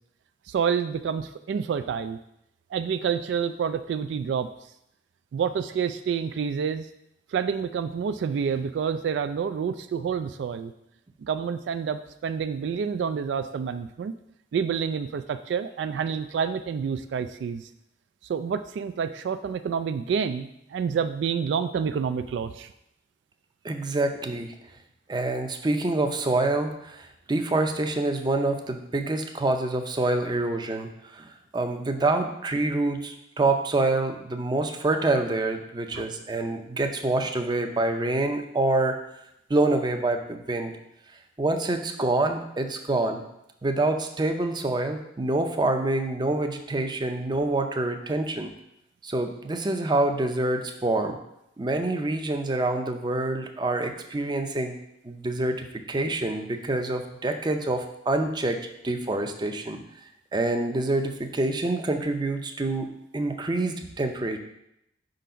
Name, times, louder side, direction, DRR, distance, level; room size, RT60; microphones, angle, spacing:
voice 1, 0.5-2.2 2.7-4.5 5.3-6.9 7.3-10.7 11.2-14.1 14.5-17.6 18.3-22.7 35.9-36.1, right 7 dB, 75° right, 10 dB, 0.3 m, -28 dB
voice 2, 23.6-24.5 25.1-39.0 39.5-40.7 41.4-43.2 43.6-48.5 49.0-51.2 51.6-54.7 55.0-59.8 60.3-62.9 63.1-64.4, right 2 dB, 25° right, 6 dB, 0.5 m, -26 dB
5.0 x 3.9 x 5.6 m, 0.81 s
head